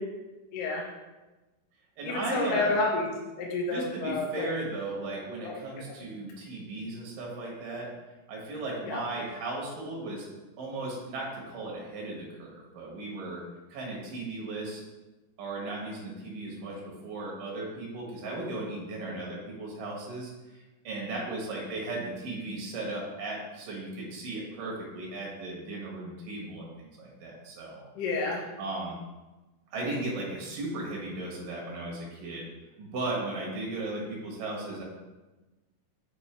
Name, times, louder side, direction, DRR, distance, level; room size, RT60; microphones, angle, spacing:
voice 1, 0.5-0.9 2.0-3.1 3.4-4.5 5.4-5.5 8.9-9.0 28.0-28.4, left 3 dB, 80° left, -3 dB, 1.9 m, -29 dB
voice 2, 2.0-2.7 3.7-7.9 8.3-10.3 10.6-13.4 13.7-14.8 15.4-20.3 20.8-27.8 28.6-28.9 29.7-32.5 32.8-34.8, right 2 dB, 65° right, -2 dB, 2.3 m, -36 dB
6.5 x 4.3 x 3.3 m, 1.1 s
omnidirectional pair, 5.4 m